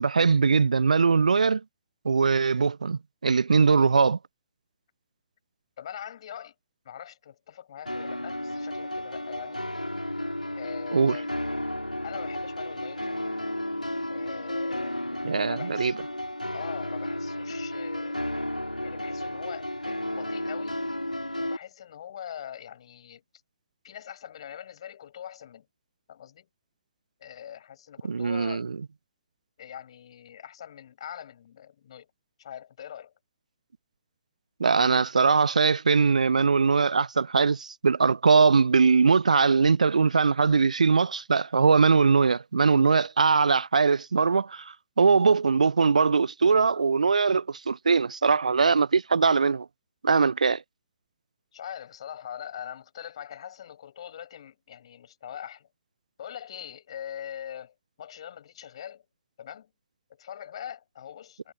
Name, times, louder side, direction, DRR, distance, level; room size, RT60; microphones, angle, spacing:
voice 1, 0.0-1.6 2.0-4.2 10.9-11.2 15.2-15.9 28.0-28.8 34.6-49.7 50.0-50.6, right 5 dB, 70° right, 0.4 m, -21 dB
voice 2, 5.8-6.5 6.8-9.6 10.6-11.3 12.0-13.3 14.1-15.0 15.5-16.0 16.5-18.2 18.8-20.8 21.4-23.2 23.8-25.7 26.1-26.5 27.2-28.7 29.6-32.1 32.4-33.1 51.5-55.7 56.2-59.0 59.4-59.7 60.1-61.5, left 9 dB, 45° left, 7.9 m, -42 dB
sound 1, 7.9-21.6, left 1 dB, 90° left, 3.4 m, -33 dB
figure-of-eight pair, 125°, 4 cm